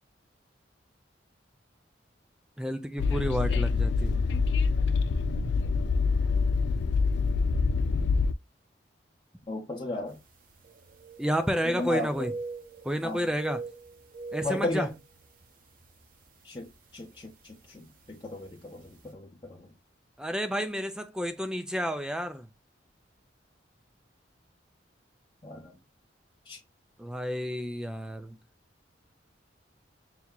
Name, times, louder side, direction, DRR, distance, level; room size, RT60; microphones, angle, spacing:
voice 1, 2.6-4.2 11.2-12.3 12.8-13.6 14.3-14.9 20.2-22.5 27.0-28.4, equal, 5° right, 0.4 m, -30 dB
Train, 3.0-8.3, left 4 dB, 65° left, 0.3 m, -25 dB
voice 2, 9.5-10.2 11.6-12.3 13.0-13.3 14.4-14.9 16.4-19.7 25.4-25.8 26.5-26.6, left 1 dB, 25° left, 0.7 m, -35 dB
sound 1, 10.2-10.3 10.6-11.9 12.1-13.0 13.3-15.4 15.8-16.0 16.7-16.9 18.0-18.1 18.4-18.5, right 3 dB, 45° right, 0.7 m, -41 dB
5.9 x 2.8 x 2.2 m
head